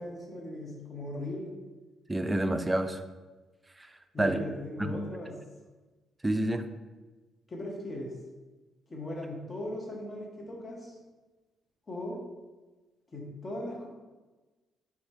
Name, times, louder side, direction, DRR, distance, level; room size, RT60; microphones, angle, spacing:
voice 1, 0.0-1.5 4.1-5.3 7.5-8.1 8.9-11.0 11.9-12.2 13.1-13.9, left 1 dB, 35° left, -1 dB, 1.0 m, -38 dB
voice 2, 2.1-3.0 3.8-4.4 4.8-5.0 6.2-6.6, right 1 dB, 15° right, 8 dB, 0.4 m, -29 dB
3.5 x 3.2 x 4.2 m, 1.2 s
cardioid pair, 90°, 0 cm